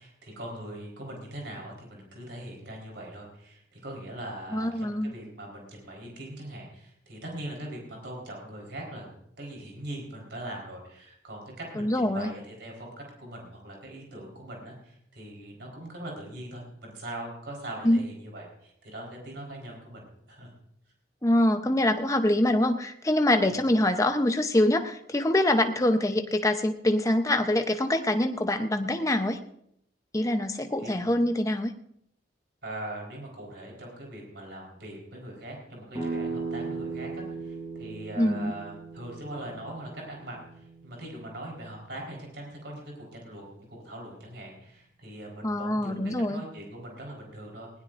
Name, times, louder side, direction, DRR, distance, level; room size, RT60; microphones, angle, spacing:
voice 1, 0.0-12.9 13.2-20.5 23.5-23.6 30.8-31.0 32.6-47.7, right 1 dB, 60° right, -1 dB, 4.3 m, -41 dB
voice 2, 4.5-5.1 11.8-12.3 17.8-18.0 21.2-29.4 30.1-31.7 38.2-38.5 45.4-46.4, left 1 dB, 15° left, 6 dB, 0.7 m, -24 dB
sound 1, 35.9-41.5, right 4 dB, 20° right, 6.3 m, -37 dB
20.0 x 17.0 x 2.6 m, 0.73 s
head